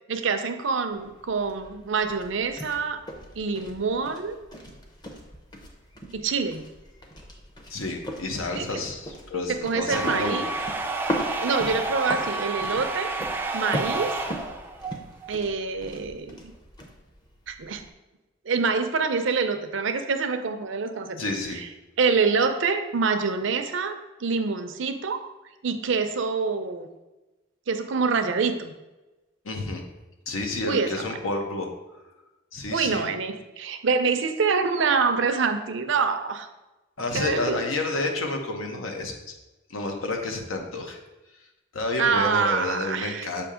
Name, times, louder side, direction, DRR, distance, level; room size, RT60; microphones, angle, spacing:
voice 1, 0.1-3.0 3.3-4.4 6.1-6.7 8.5-8.8 9.5-10.5 11.4-13.2 13.5-14.2 15.3-16.4 17.5-17.8 18.4-21.2 21.5-21.7 22.0-25.3 25.6-26.9 27.7-28.7 30.6-31.1 32.7-36.5 37.1-37.6 42.0-43.4, right 5 dB, 65° right, 8 dB, 0.5 m, -26 dB
sound 1, 0.9-17.9, equal, 20° left, 0.6 m, -38 dB
voice 2, 7.7-10.4 21.2-21.6 29.4-29.8 30.3-31.7 32.5-33.0 37.0-39.1 39.7-41.0 41.7-43.4, left 2 dB, 85° left, 3 dB, 0.9 m, -30 dB
sound 2, 9.9-15.4, right 2 dB, 10° right, 0.3 m, -30 dB
7.0 x 2.8 x 4.9 m, 1.1 s
head